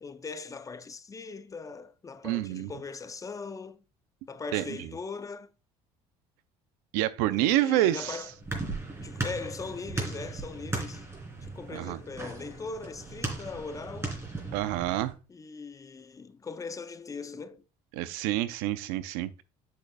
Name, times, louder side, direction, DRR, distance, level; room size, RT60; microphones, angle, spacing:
voice 1, 0.0-3.8 4.3-5.5 7.3-8.3 9.0-11.1 11.4-14.2 15.3-17.6, left 4 dB, 25° left, 0.5 m, -40 dB
voice 2, 2.2-2.7 4.5-4.9 6.9-8.2 11.7-12.0 14.5-15.1 17.9-19.4, right 14 dB, 85° right, 0.5 m, -28 dB
sound 1, 7.9-15.1, right 3 dB, 20° right, 3.3 m, -37 dB
7.7 x 6.7 x 2.3 m
supercardioid pair, 90°, 14 cm